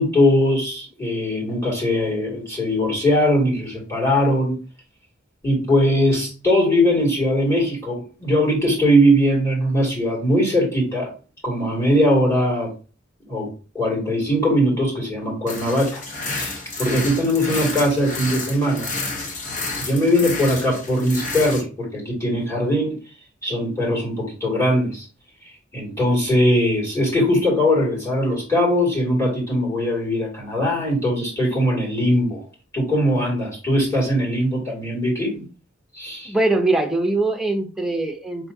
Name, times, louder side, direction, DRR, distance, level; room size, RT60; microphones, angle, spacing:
voice 1, 0.0-4.6 5.4-11.1 11.4-12.7 13.3-13.5 13.7-16.0 16.3-18.9 19.8-23.0 23.4-25.1 25.7-32.4 32.7-35.4 35.9-36.3, equal, 15° left, 2.2 m, -20 dB
sound 1, 15.5-21.6, left 3 dB, 45° left, 1.0 m, -30 dB
voice 2, 36.3-38.5, right 2 dB, ahead, 0.6 m, -22 dB
4.7 x 3.4 x 2.6 m
head